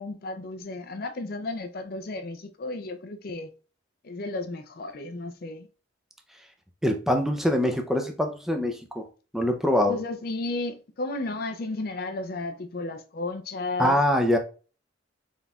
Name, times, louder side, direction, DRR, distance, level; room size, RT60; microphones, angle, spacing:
voice 1, 0.0-3.5 4.0-5.7 9.9-14.0, left 2 dB, 50° left, 0.5 m, -33 dB
voice 2, 6.8-9.0 9.3-10.0 13.8-14.4, left 1 dB, ahead, 0.5 m, -24 dB
4.0 x 4.0 x 2.3 m
head